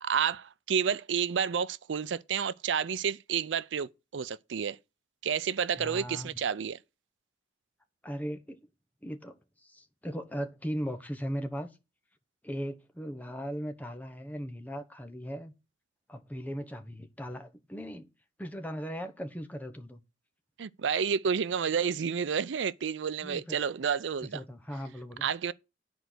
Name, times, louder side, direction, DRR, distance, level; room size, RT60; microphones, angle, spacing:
voice 1, 0.0-4.8 5.2-6.8 20.6-24.4 25.2-25.5, right 7 dB, 85° right, 0.5 m, -30 dB
voice 2, 5.8-6.3 8.0-8.6 9.0-11.7 12.4-15.5 16.1-18.1 18.4-20.0 23.2-23.6 24.2-25.3, equal, 10° left, 1.0 m, -38 dB
10.5 x 4.6 x 7.8 m
head